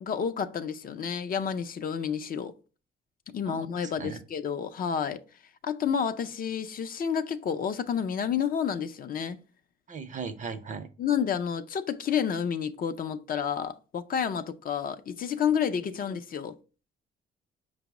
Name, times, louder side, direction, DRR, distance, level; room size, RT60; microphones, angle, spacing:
voice 1, 0.0-2.5 3.3-5.2 5.6-9.4 11.0-16.5, left 7 dB, 45° left, 0.4 m, -30 dB
voice 2, 3.5-4.2 9.9-10.9 15.8-16.0, right 5 dB, 40° right, 0.5 m, -38 dB
5.1 x 2.0 x 4.6 m
cardioid pair, 90°, 20 cm